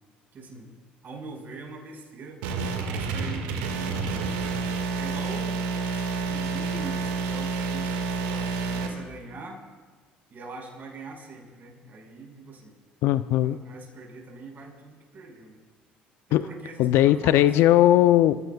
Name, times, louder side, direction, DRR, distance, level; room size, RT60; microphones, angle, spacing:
voice 1, 0.3-4.5 5.0-5.8 6.2-9.6 10.3-12.8 13.4-15.6 16.3-17.5, right 3 dB, 45° right, 0 dB, 5.6 m, -42 dB
sound 1, 2.4-8.9, right 4 dB, 80° right, 1.9 m, -29 dB
voice 2, 13.0-13.6 16.3-16.4 16.8-18.5, left 13 dB, 70° left, 14 dB, 0.5 m, -19 dB
29.5 x 16.0 x 2.4 m, 1.3 s
hypercardioid pair, 65°, 4 cm